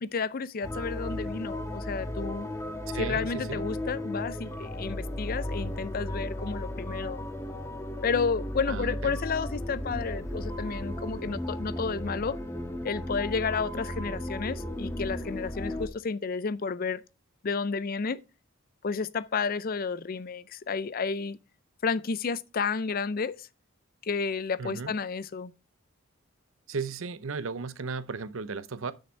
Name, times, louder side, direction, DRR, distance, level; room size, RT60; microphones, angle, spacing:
voice 1, 0.0-2.5 3.0-7.2 8.0-12.4 12.8-17.0 17.4-18.2 18.8-21.4 21.8-23.5 24.0-25.5, left 5 dB, 45° left, 0.4 m, -31 dB
sound 1, 0.6-15.9, left 1 dB, 15° left, 1.3 m, -35 dB
voice 2, 2.9-3.6 8.7-9.2 24.6-24.9 26.7-28.9, right 4 dB, 75° right, 0.7 m, -35 dB
8.6 x 6.5 x 4.5 m
head